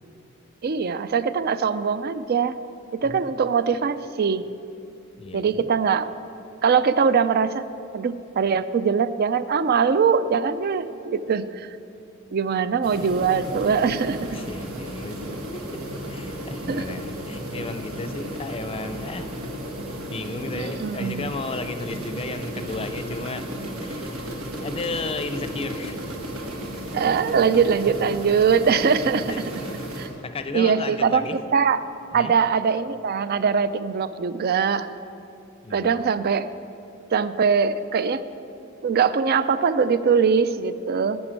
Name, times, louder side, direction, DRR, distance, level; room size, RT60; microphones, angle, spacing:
voice 1, 0.6-2.6 3.0-4.4 5.3-6.1 6.6-7.6 7.9-11.7 12.3-14.4 16.7-16.8 20.5-21.3 26.9-29.4 30.0-30.1 30.5-31.8 32.1-34.9 35.7-36.5 37.1-38.2 38.8-41.2, right 6 dB, 50° right, 14 dB, 0.4 m, -22 dB
voice 2, 5.2-5.7 14.3-15.8 16.1-19.3 20.1-23.5 23.8-26.0 26.9-27.2 29.3-31.4 32.1-32.3 35.6-36.0, left 3 dB, 25° left, 9 dB, 0.6 m, -34 dB
sound 1, 12.8-30.1, right 1 dB, 90° right, 1.6 m, -34 dB
11.0 x 6.1 x 8.8 m, 2.7 s
head